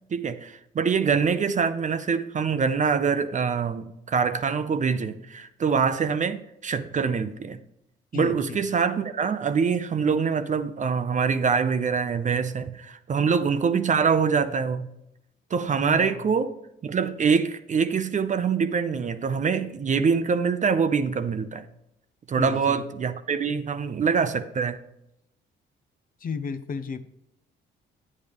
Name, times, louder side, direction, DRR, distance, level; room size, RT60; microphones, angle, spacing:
voice 1, 0.1-7.6 8.1-14.9 15.5-16.6 16.8-21.7 22.3-24.8, right 6 dB, 40° right, 0.6 m, -24 dB
voice 2, 8.1-8.6 15.7-16.3 22.4-22.9 26.2-27.1, left 5 dB, 45° left, 0.7 m, -34 dB
9.5 x 8.7 x 3.5 m
cardioid pair, 90°, 20 cm